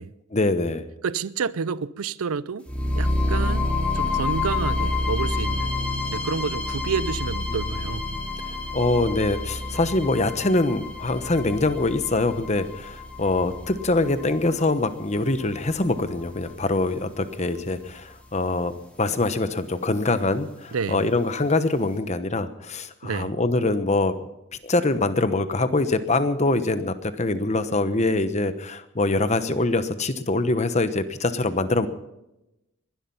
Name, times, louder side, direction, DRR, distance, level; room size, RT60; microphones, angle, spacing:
voice 1, 0.3-0.8 8.1-18.7 19.0-24.1 24.6-31.9, left 2 dB, 30° left, 1.0 m, -24 dB
voice 2, 1.0-2.7 3.0-5.7 6.1-8.0 20.7-21.0 23.0-23.4, right 5 dB, 80° right, 0.5 m, -29 dB
sound 1, 2.7-16.7, left 2 dB, 5° left, 2.6 m, -29 dB
21.0 x 12.0 x 5.6 m
head